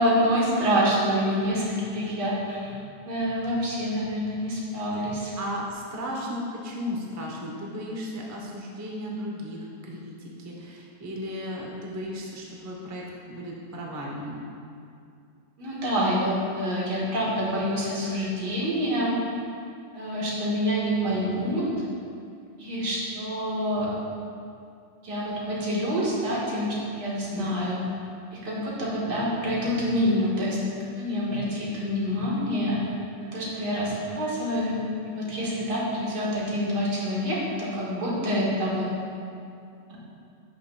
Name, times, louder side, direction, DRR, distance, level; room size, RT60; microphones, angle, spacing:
voice 1, 0.0-2.7 3.0-5.3 15.6-19.2 19.9-21.7 22.6-23.9 25.0-27.8 28.3-32.9 33.2-34.8 35.2-38.9, equal, 90° right, -6 dB, 2.1 m, -27 dB
voice 2, 5.4-14.4, equal, 25° right, -2 dB, 0.4 m, -35 dB
11.0 x 5.6 x 2.2 m, 2.4 s
omnidirectional pair, 1.8 m